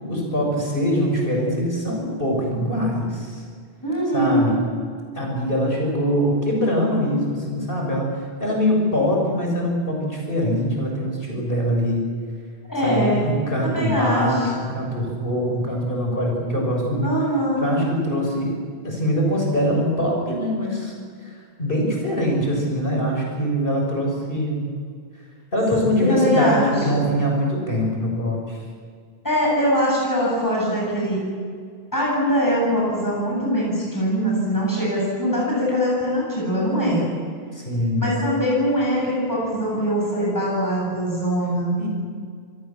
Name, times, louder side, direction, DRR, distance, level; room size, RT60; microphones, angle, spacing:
voice 1, 0.0-3.4 4.1-4.6 5.2-12.1 12.8-17.1 17.6-18.5 18.8-20.9 21.2-24.6 25.5-28.6 37.5-38.2 41.8-41.9, equal, 55° left, 0 dB, 7.1 m, -23 dB
voice 2, 3.8-4.6 12.7-13.2 13.6-14.5 17.0-17.8 26.1-27.1 29.2-31.2 31.9-37.0 38.0-41.8, equal, 20° left, -4 dB, 8.0 m, -22 dB
26.5 x 21.0 x 7.5 m, 2.1 s
omnidirectional pair, 1.1 m